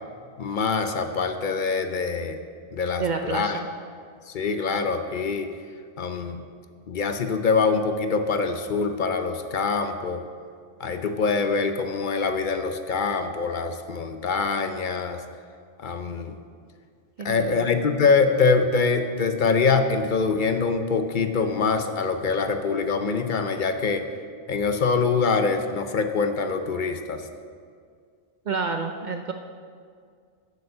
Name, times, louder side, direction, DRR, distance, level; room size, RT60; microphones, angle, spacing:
voice 1, 0.4-2.4 2.7-3.6 4.3-5.5 6.0-6.4 6.9-10.2 10.8-15.2 15.8-16.4 17.2-24.0 24.5-27.2, left 4 dB, 55° left, 7 dB, 0.7 m, -24 dB
voice 2, 3.0-3.7 17.2-17.7 28.5-29.3, right 4 dB, 55° right, 5 dB, 0.6 m, -29 dB
8.2 x 6.9 x 6.6 m, 2.1 s
omnidirectional pair, 1.1 m